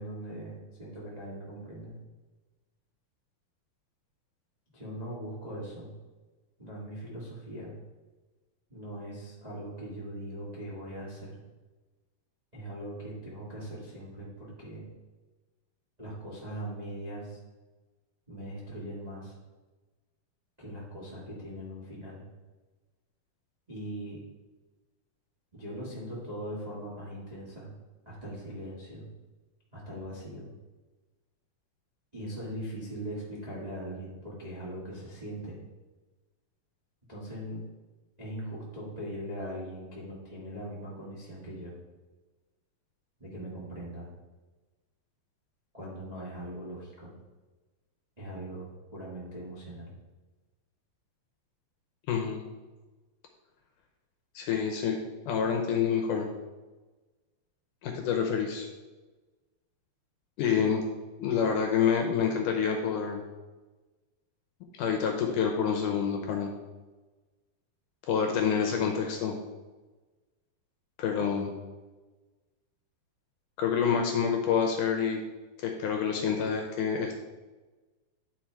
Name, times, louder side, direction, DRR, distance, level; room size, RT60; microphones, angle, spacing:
voice 1, 0.0-2.0 4.7-5.9 6.6-7.8 8.7-11.4 12.5-14.8 16.0-17.4 18.3-19.3 20.6-22.3 23.7-24.2 25.5-27.7 28.0-29.1 29.7-30.5 32.1-35.6 37.1-37.6 38.2-41.8 43.2-44.1 45.7-47.1 48.2-49.9, right 1 dB, 50° right, -6 dB, 0.5 m, -40 dB
voice 2, 52.1-52.4 54.4-55.0 55.3-56.3 57.8-58.7 60.4-60.8 61.2-63.2 64.8-66.5 68.1-69.4 71.0-71.5 73.6-75.2 75.6-77.2, left 7 dB, 75° left, 3 dB, 2.0 m, -27 dB
10.0 x 4.1 x 4.6 m, 1.2 s
omnidirectional pair, 4.3 m